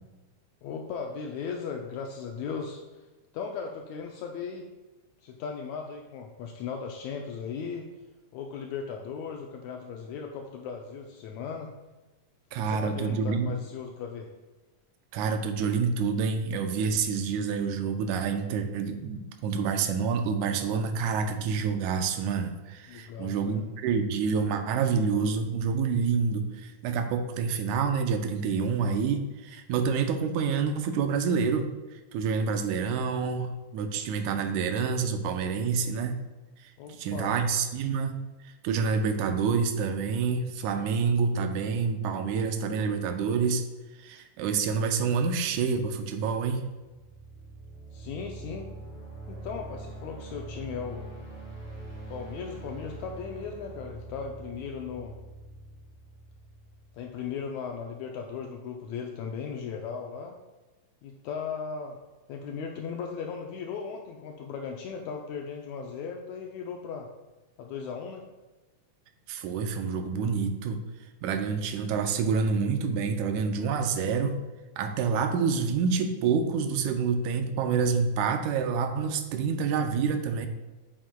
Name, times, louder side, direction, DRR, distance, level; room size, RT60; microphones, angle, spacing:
voice 1, 0.6-2.8 3.3-4.7 5.2-7.9 8.3-11.7 12.5-14.3 22.9-23.6 36.8-37.4 47.9-48.7 49.3-51.1 52.1-55.2 56.9-60.4 61.0-62.0 62.3-67.1 67.6-68.3, left 6 dB, 80° left, 2 dB, 1.8 m, -37 dB
voice 2, 12.5-13.5 15.1-31.7 32.1-36.2 36.6-38.2 38.4-43.6 44.0-46.7 69.3-70.8 71.2-74.4 74.8-80.5, right 5 dB, 90° right, 7 dB, 2.1 m, -28 dB
sound 1, 46.7-57.4, right 2 dB, 5° left, 1.8 m, -44 dB
8.7 x 7.4 x 2.3 m, 1.1 s
omnidirectional pair, 3.4 m